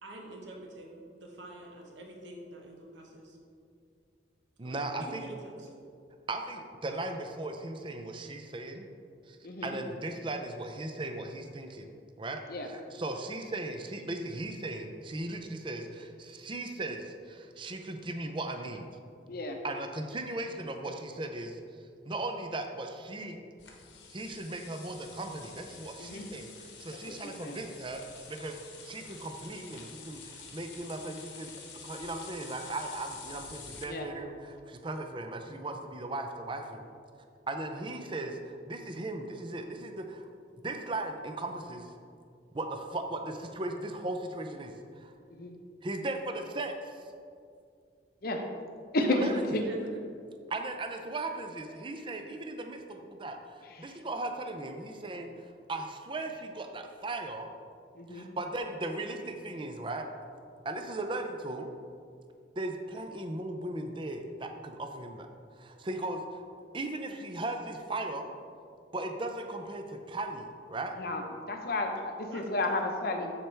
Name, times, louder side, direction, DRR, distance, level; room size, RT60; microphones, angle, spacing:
voice 1, 0.0-3.4 4.6-5.7 49.0-50.0 72.2-72.7, right 1 dB, 80° right, 0 dB, 1.3 m, -46 dB
voice 2, 4.6-5.2 6.3-8.8 9.3-9.4 9.6-18.9 19.6-21.6 22.1-23.4 24.1-28.6 28.8-31.5 31.8-36.8 37.5-40.2 40.6-41.9 42.5-45.1 45.8-47.0 49.1-49.4 50.5-55.3 55.7-57.5 58.1-60.1 60.6-61.7 62.6-65.3 65.6-66.4 66.7-68.3 68.9-70.9, right 2 dB, 25° right, 5 dB, 0.5 m, -37 dB
voice 3, 9.4-9.8 12.5-12.7 19.3-19.6 26.0-26.3 27.1-27.6 33.9-34.1 45.3-45.5 48.2-48.4 48.9-49.3 49.5-49.6 53.7-53.9 58.0-58.3 71.0-73.3, left 2 dB, 55° left, 3 dB, 0.8 m, -32 dB
sound 1, 23.6-33.8, left 5 dB, 75° left, 1.3 m, -48 dB
13.0 x 4.4 x 3.4 m, 2.3 s
head